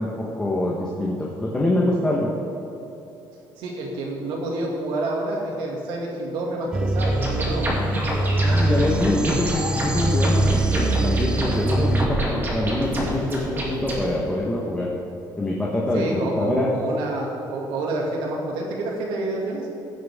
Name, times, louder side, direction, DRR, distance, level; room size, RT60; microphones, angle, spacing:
voice 1, 0.0-2.3 8.4-14.9 15.4-16.7, left 1 dB, 10° left, -3 dB, 1.1 m, -25 dB
voice 2, 3.6-7.7 15.9-19.7, right 2 dB, 90° right, -1 dB, 2.3 m, -28 dB
sound 1, 6.7-12.1, right 2 dB, 10° right, 0.4 m, -23 dB
sound 2, 7.0-14.0, right 1 dB, 25° right, 2.2 m, -28 dB
16.5 x 7.7 x 3.6 m, 2.9 s
cardioid pair, 155°, 8 cm